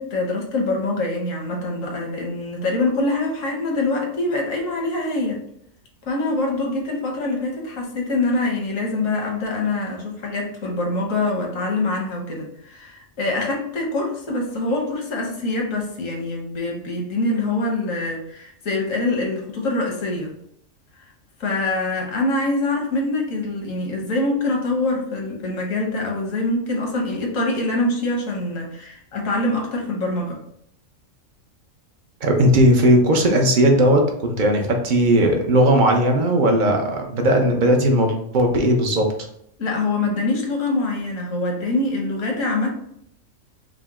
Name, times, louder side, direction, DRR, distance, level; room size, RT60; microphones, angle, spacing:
voice 1, 0.0-5.4 6.1-20.3 21.4-30.4 39.6-42.7, left 2 dB, 80° left, 0 dB, 1.4 m, -24 dB
voice 2, 32.2-39.1, right 1 dB, 45° right, 3 dB, 0.7 m, -17 dB
5.0 x 2.1 x 3.5 m, 0.72 s
omnidirectional pair, 1.3 m